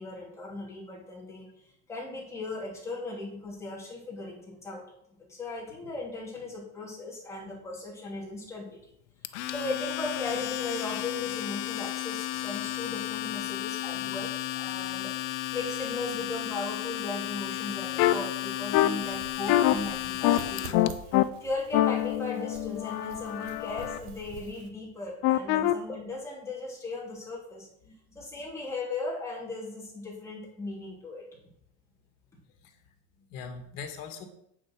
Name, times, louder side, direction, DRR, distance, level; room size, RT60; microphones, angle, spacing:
voice 1, 0.0-4.8 5.2-8.9 9.3-27.7 28.1-31.2, left 2 dB, 10° left, -4 dB, 2.9 m, -37 dB
Domestic sounds home sounds, 9.2-20.9, left 15 dB, 85° left, 0.9 m, -34 dB
sound 1, 18.0-18.1 18.7-18.9 19.5-19.7 20.2-20.4 20.7-21.2 21.7-24.0 25.2-25.7, left 15 dB, 40° left, 0.5 m, -24 dB
sound 2, 19.0-24.7, right 5 dB, 65° right, 1.7 m, -47 dB
voice 2, 27.8-28.2 32.6-32.8 33.2-34.2, left 6 dB, 55° left, 6 dB, 2.2 m, -42 dB
8.6 x 7.3 x 6.4 m, 0.74 s
cardioid pair, 175°, 34 cm